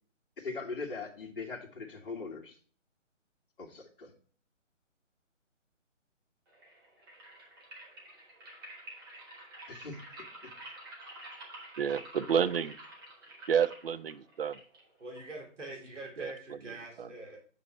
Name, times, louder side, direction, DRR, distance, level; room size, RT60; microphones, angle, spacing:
voice 1, 0.4-2.6 3.6-4.1 9.7-10.0, left 4 dB, 45° left, -1 dB, 1.8 m, -40 dB
sound 1, 6.5-15.5, right 1 dB, 20° right, 1.2 m, -49 dB
voice 2, 11.8-12.7 13.5-14.6 16.2-16.3 17.0-17.1, right 7 dB, 50° right, 14 dB, 0.5 m, -29 dB
voice 3, 15.0-17.4, right 2 dB, 70° right, 0 dB, 3.1 m, -44 dB
7.6 x 5.4 x 3.0 m, 0.44 s
figure-of-eight pair, 160°, 38 cm